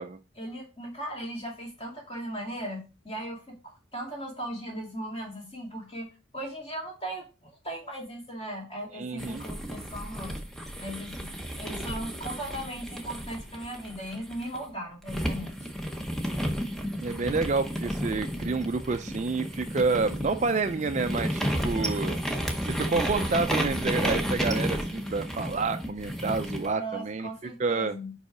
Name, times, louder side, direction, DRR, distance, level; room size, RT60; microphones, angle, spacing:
voice 1, 0.4-10.4 10.8-11.3 11.5-15.7 26.8-28.1, right 1 dB, 25° left, -1 dB, 2.2 m, -38 dB
voice 2, 8.9-9.4 17.0-22.2 22.6-28.0, right 4 dB, 35° right, 8 dB, 0.4 m, -29 dB
sound 1, 9.2-14.6 15.1-26.7, equal, ahead, 0.7 m, -32 dB
5.1 x 4.8 x 4.8 m, 0.31 s
head